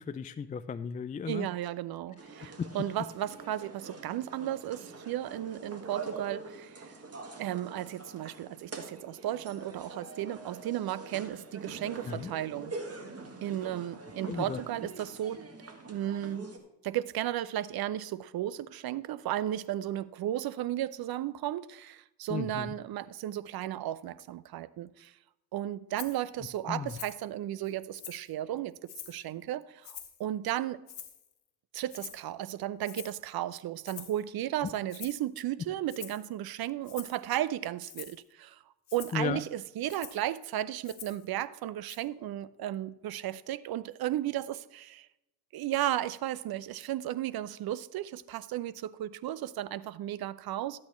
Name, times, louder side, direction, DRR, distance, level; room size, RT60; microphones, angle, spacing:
voice 1, 0.0-1.5 2.6-2.7 12.1-12.3 14.3-14.6 22.3-22.7 26.7-26.9 39.1-39.4, left 6 dB, 20° left, 0.3 m, -35 dB
voice 2, 1.3-6.9 7.4-12.7 13.4-15.4 15.9-16.5 16.8-25.1 25.5-28.8 29.1-30.8 31.7-38.6 38.9-45.1 45.5-50.8, right 12 dB, 55° right, 0.6 m, -34 dB
sound 1, 2.2-16.6, right 3 dB, 30° right, 1.8 m, -45 dB
Rattle (instrument), 26.0-26.2 26.9-27.2 27.6-28.3 28.9-29.2 29.8-30.2 30.9-31.3 31.9-32.3 32.8-33.2 33.8-34.2 34.9-35.2 35.9-36.3 36.8-37.2 37.8-38.2 38.9-39.2 39.9-40.3 40.8-41.3 41.9-42.0, left 10 dB, 60° left, 1.7 m, -46 dB
13.0 x 8.7 x 3.1 m
supercardioid pair, 70°, 45 cm